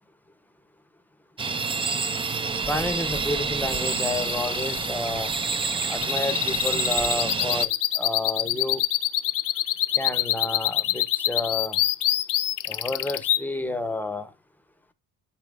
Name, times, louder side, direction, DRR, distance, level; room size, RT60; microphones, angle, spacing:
sound 1, 1.4-7.7, right 4 dB, 15° right, 0.3 m, -28 dB
voice 1, 2.5-5.3 5.9-8.8 10.0-11.8 12.7-14.3, left 1 dB, 5° left, 0.7 m, -30 dB
sound 2, 3.6-13.4, left 14 dB, 60° left, 0.6 m, -25 dB
12.0 x 4.4 x 2.4 m
cardioid pair, 130°, 36 cm